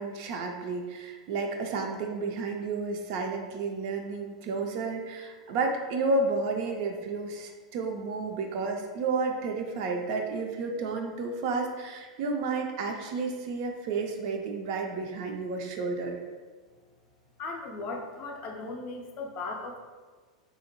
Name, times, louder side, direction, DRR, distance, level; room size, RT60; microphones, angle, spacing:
voice 1, 0.0-16.2, right 3 dB, 50° right, 3 dB, 0.4 m, -31 dB
voice 2, 17.4-19.8, left 3 dB, 40° left, 2 dB, 0.4 m, -37 dB
2.7 x 2.0 x 2.8 m, 1.4 s
figure-of-eight pair, 90°, 3 cm